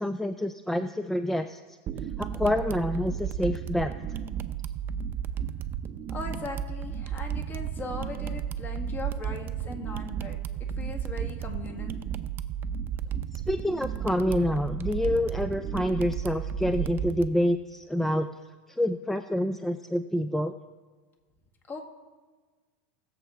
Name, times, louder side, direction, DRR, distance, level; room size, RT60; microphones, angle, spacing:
voice 1, 0.0-1.8 2.2-3.9 13.3-18.3 18.7-20.5, left 1 dB, 5° left, 9 dB, 0.4 m, -27 dB
sound 1, 1.9-17.3, right 8 dB, 35° right, 0.6 m, -33 dB
voice 2, 6.1-10.4 10.7-12.0 21.7-21.8, left 3 dB, 30° left, 4 dB, 1.9 m, -39 dB
20.5 x 7.2 x 3.5 m, 1.4 s
supercardioid pair, 115°, 6 cm